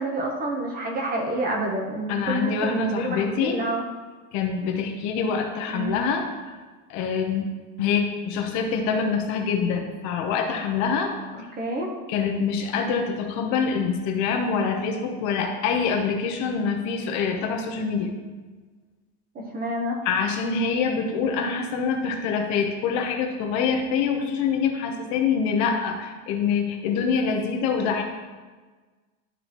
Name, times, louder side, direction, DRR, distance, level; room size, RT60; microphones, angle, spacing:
voice 1, 0.0-3.8 5.7-5.9 11.6-11.9 19.3-20.0, right 1 dB, 25° right, 1 dB, 1.0 m, -28 dB
voice 2, 2.1-3.6 4.3-6.5 6.9-7.5 7.8-11.1 12.1-18.1 20.0-28.0, left 6 dB, 50° left, 3 dB, 0.9 m, -25 dB
12.0 x 4.0 x 3.0 m, 1.4 s
cardioid pair, 155°, 36 cm